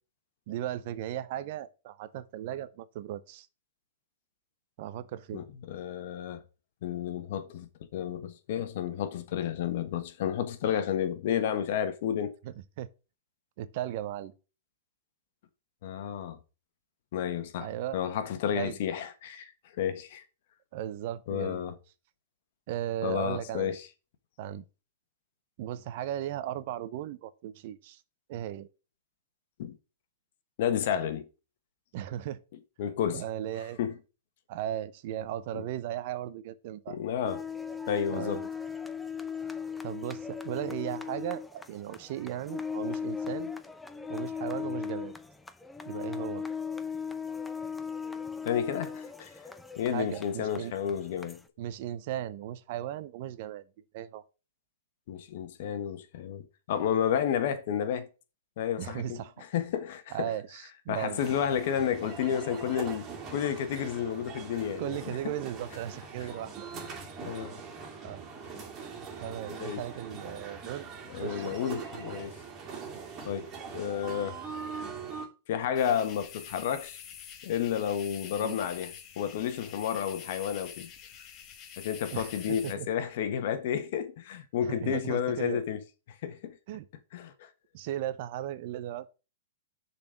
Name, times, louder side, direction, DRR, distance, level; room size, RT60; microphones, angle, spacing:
voice 1, 0.5-3.5 4.8-5.4 12.4-12.9 13.6-14.3 17.6-18.0 18.5-18.8 20.7-21.6 22.7-23.8 24.4-24.6 25.6-28.0 28.3-28.7 31.9-32.4 33.1-33.8 34.5-37.0 38.1-38.5 39.8-43.5 44.1-45.2 45.8-46.5 49.9-50.7 51.6-53.6 53.9-54.2 58.8-59.4 60.1-61.2 64.8-66.7 67.2-67.4 68.0-68.2 69.2-70.9 71.2-71.6 72.9-73.1 78.4-78.6 82.1-82.9 84.6-85.6 86.7-86.9 87.7-89.1, right 12 dB, 50° right, 0.7 m, -36 dB
voice 2, 5.3-6.4 6.8-12.4 15.8-16.4 17.1-19.5 19.8-20.2 21.3-21.7 23.0-23.8 29.6-29.8 30.6-31.3 32.8-33.2 33.8-33.9 35.5-35.6 36.9-37.5 37.9-38.4 48.4-49.3 49.8-51.4 55.1-58.1 58.6-59.2 59.5-60.3 60.9-65.2 67.2-67.6 69.5-69.8 71.1-72.3 73.2-74.4 75.5-77.0 77.4-80.9 81.8-85.8 86.2-86.6 87.1-87.5, left 9 dB, 55° left, 1.2 m, -31 dB
sound 1, 37.2-51.4, left 6 dB, 5° left, 0.7 m, -38 dB
sound 2, 61.2-75.3, right 5 dB, 25° right, 2.4 m, -42 dB
sound 3, 75.7-82.7, left 8 dB, 35° left, 1.3 m, -46 dB
7.0 x 4.2 x 6.6 m
hypercardioid pair, 135°, 0 cm